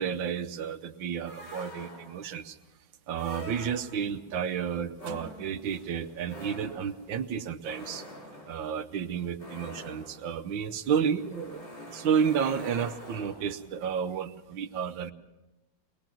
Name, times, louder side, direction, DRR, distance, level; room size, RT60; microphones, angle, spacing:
voice 1, 0.0-2.6 3.1-8.0 8.5-15.1, right 7 dB, 85° right, 10 dB, 1.6 m, -31 dB
sound 1, 1.3-2.3 3.1-4.2 4.9-13.7, left 1 dB, 65° left, 4.4 m, -46 dB
23.0 x 20.0 x 6.0 m, 1.0 s
omnidirectional pair, 2.0 m